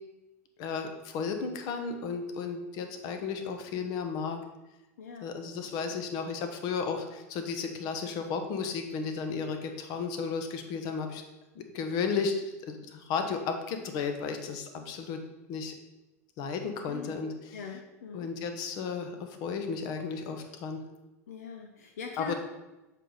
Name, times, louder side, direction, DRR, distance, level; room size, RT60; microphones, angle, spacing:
voice 1, 0.6-4.4 5.2-11.2 11.5-15.2 15.5-15.7 16.4-17.6 18.1-20.8 22.2-22.3, left 5 dB, 50° left, 6 dB, 1.0 m, -34 dB
voice 2, 5.0-5.3 5.6-6.1 16.9-17.2 17.5-18.3 21.3-22.3, left 6 dB, 75° left, 3 dB, 0.7 m, -42 dB
6.5 x 5.1 x 4.0 m, 1.0 s
hypercardioid pair, 95°, 9 cm